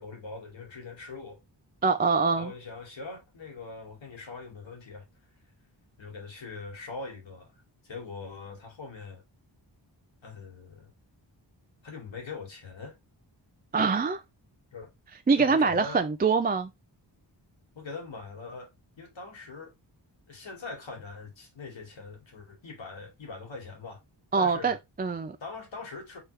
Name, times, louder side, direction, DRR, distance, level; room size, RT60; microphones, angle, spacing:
voice 1, 0.0-1.4 2.4-5.1 6.0-7.5 7.8-9.2 10.2-10.9 11.8-13.0 14.7-14.9 15.4-16.1 17.8-18.7 19.0-19.7 20.3-24.0 24.4-24.8 25.4-26.2, left 3 dB, 90° left, 2.0 m, -42 dB
voice 2, 1.8-2.5 13.7-14.2 15.3-16.7 24.3-25.4, right 4 dB, 25° right, 0.3 m, -24 dB
4.4 x 3.7 x 3.2 m
wide cardioid pair, 85°, 45 cm